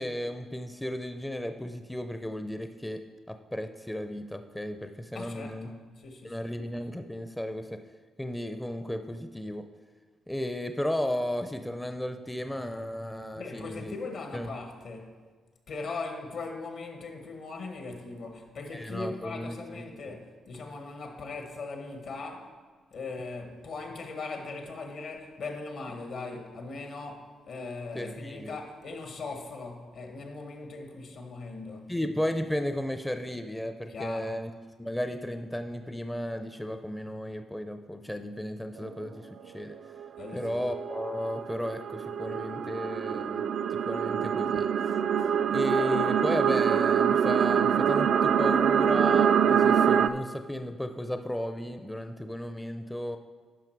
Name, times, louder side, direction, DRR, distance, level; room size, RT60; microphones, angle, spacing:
voice 1, 0.0-3.0 3.5-5.7 6.2-7.7 8.2-9.6 10.3-13.9 14.3-14.5 18.7-20.2 27.9-28.6 31.9-34.5 34.8-39.7 40.3-43.4 43.7-44.7 45.5-53.2, left 1 dB, 5° left, 0.5 m, -34 dB
voice 2, 5.1-6.5 13.3-15.1 15.7-22.5 22.9-31.9 33.9-34.3 40.2-40.6, left 3 dB, 70° left, 1.5 m, -39 dB
sound 1, 38.8-39.1 39.9-50.1, right 8 dB, 65° right, 0.3 m, -25 dB
11.0 x 5.7 x 4.6 m
cardioid pair, 80°, 0 cm